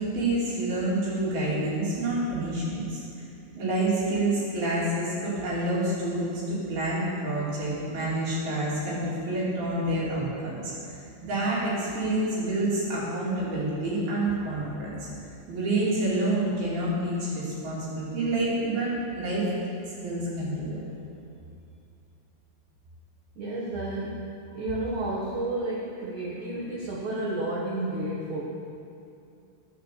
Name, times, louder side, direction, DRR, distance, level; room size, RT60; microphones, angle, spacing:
voice 1, 0.0-3.0 3.5-15.1 15.5-19.5 20.0-20.8, right 1 dB, 50° right, -7 dB, 4.1 m, -28 dB
voice 2, 23.3-24.2 24.5-28.4, right 1 dB, 90° right, -6 dB, 1.7 m, -31 dB
11.5 x 7.6 x 6.8 m, 2.5 s
omnidirectional pair, 5.9 m